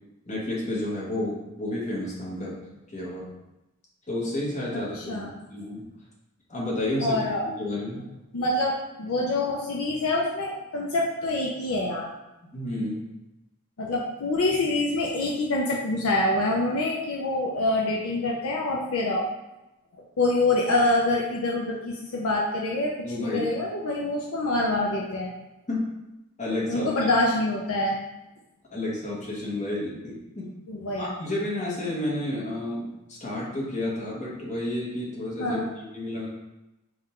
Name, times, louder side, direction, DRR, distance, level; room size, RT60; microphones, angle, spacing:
voice 1, 0.3-2.5 2.9-3.3 4.1-5.8 6.5-8.0 12.5-13.0 23.0-23.4 25.7-25.9 26.4-26.9 28.7-30.5 31.0-36.3, left 1 dB, 35° left, -5 dB, 1.1 m, -31 dB
voice 2, 4.7-5.3 7.0-7.5 8.3-12.1 13.8-19.3 20.2-25.3 26.7-28.0 30.7-31.1 35.4-35.7, left 2 dB, 65° left, -2 dB, 0.5 m, -26 dB
3.7 x 2.4 x 4.2 m, 0.97 s
head